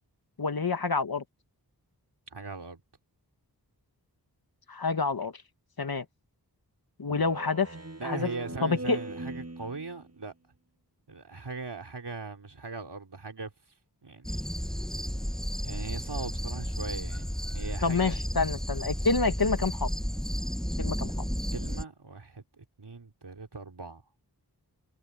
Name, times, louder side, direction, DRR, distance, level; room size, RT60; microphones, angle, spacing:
voice 1, 0.4-1.2 4.7-5.3 5.8-6.0 7.0-7.7 8.0-8.3 8.6-9.0 17.8-19.9 20.8-21.3, left 4 dB, 65° left, 1.5 m, -28 dB
voice 2, 2.3-2.8 8.0-10.3 11.1-13.5 14.0-14.4 15.6-18.2 21.5-24.0, right 4 dB, 80° right, 3.8 m, -40 dB
Speech synthesizer, 7.1-10.1, right 2 dB, 40° right, 7.1 m, -40 dB
sound 1, 14.2-21.8, equal, ahead, 0.9 m, -32 dB
wide cardioid pair, 45°, 40 cm